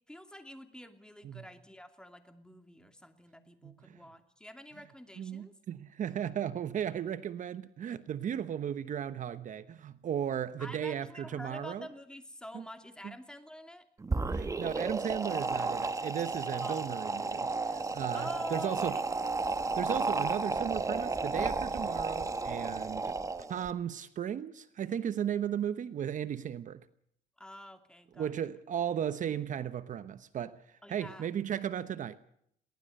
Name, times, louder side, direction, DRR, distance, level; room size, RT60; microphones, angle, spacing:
voice 1, 0.1-5.6 10.6-13.9 16.6-16.9 18.1-18.8 27.4-28.3 30.8-31.3, left 1 dB, 5° left, 2.7 m, -47 dB
voice 2, 3.6-4.0 5.2-11.9 12.5-12.6 14.2-19.0 19.7-23.2 23.5-26.8 28.2-32.2, right 9 dB, 50° right, 1.0 m, -36 dB
sound 1, 14.0-23.7, right 3 dB, 20° right, 1.2 m, -33 dB
22.5 x 17.5 x 6.6 m
cardioid pair, 110°, 17 cm